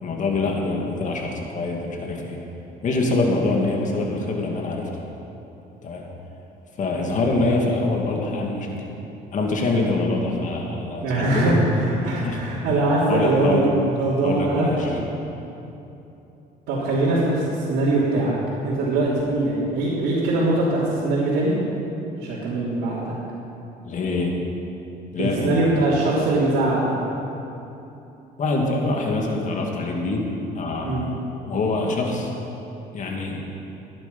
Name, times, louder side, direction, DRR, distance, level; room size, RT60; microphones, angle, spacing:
voice 1, 0.0-2.4 2.8-4.9 5.8-6.0 6.8-8.8 9.3-11.6 12.2-12.4 13.1-13.7 14.2-14.9 23.8-24.3 25.1-25.7 28.4-30.3 30.5-32.3 32.9-33.4, left 2 dB, 50° left, 0 dB, 2.2 m, -24 dB
voice 2, 11.0-14.9 16.7-18.3 18.6-21.5 22.2-23.1 25.2-27.0 30.8-31.1, right 2 dB, 80° right, -10 dB, 3.2 m, -22 dB
16.0 x 10.5 x 5.5 m, 2.9 s
cardioid pair, 110°, 17 cm